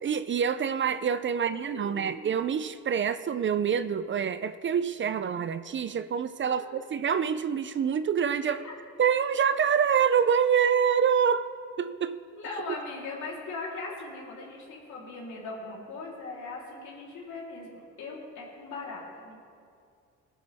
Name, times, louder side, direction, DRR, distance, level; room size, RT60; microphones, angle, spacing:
voice 1, 0.0-8.6 9.0-11.5 11.8-12.2, right 7 dB, 40° right, 12 dB, 0.5 m, -26 dB
voice 2, 1.4-2.1 6.5-6.8 8.5-8.7 12.3-19.4, left 3 dB, 70° left, -4 dB, 3.7 m, -40 dB
20.0 x 10.5 x 3.5 m, 2.3 s
cardioid pair, 90°, 30 cm